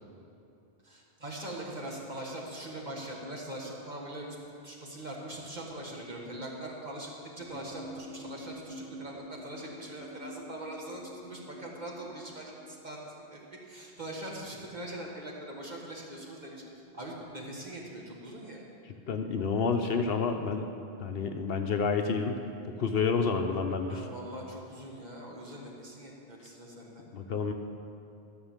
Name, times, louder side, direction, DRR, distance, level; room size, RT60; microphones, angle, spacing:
voice 1, 0.8-4.4 4.6-16.6 16.9-18.6 23.9-27.0, right 1 dB, 40° right, -2 dB, 1.7 m, -42 dB
sound 1, 7.4-12.7, equal, 65° right, 2.4 m, -47 dB
voice 2, 19.1-20.7 21.0-22.4 22.8-24.0 27.1-27.5, left 5 dB, 65° left, 5 dB, 0.9 m, -29 dB
13.5 x 6.1 x 7.2 m, 2.7 s
omnidirectional pair, 1.1 m